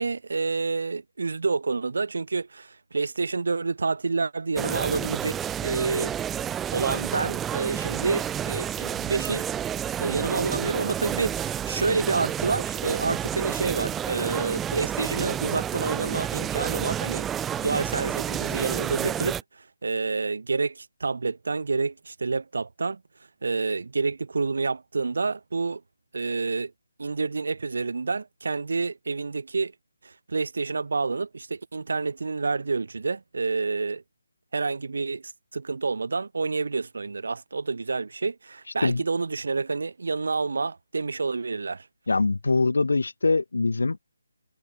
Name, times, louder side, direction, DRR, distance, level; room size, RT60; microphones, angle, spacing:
voice 1, 0.0-6.2 6.7-9.4 10.0-17.3 17.6-23.0 23.4-25.8 26.1-26.7 27.0-29.7 30.0-34.0 34.5-41.9, right 4 dB, 55° right, 6.4 m, -28 dB
sound 1, 4.6-19.4, right 9 dB, 5° right, 0.8 m, -30 dB
voice 2, 42.1-44.0, left 3 dB, 75° left, 3.6 m, -23 dB
hypercardioid pair, 180°, 0 cm